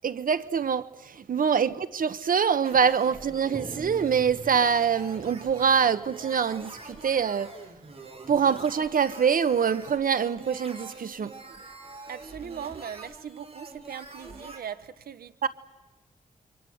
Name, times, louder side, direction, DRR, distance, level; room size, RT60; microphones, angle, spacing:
voice 1, 0.0-7.6 8.3-11.4 15.4-15.5, right 7 dB, 65° right, 1.2 m, -25 dB
sound 1, 2.6-14.6, right 3 dB, 40° right, 5.0 m, -45 dB
sound 2, 3.5-8.0, right 3 dB, 25° right, 1.8 m, -45 dB
voice 2, 12.1-15.3, right 8 dB, 90° right, 1.1 m, -40 dB
27.5 x 25.0 x 8.0 m
wide cardioid pair, 100°, 15 cm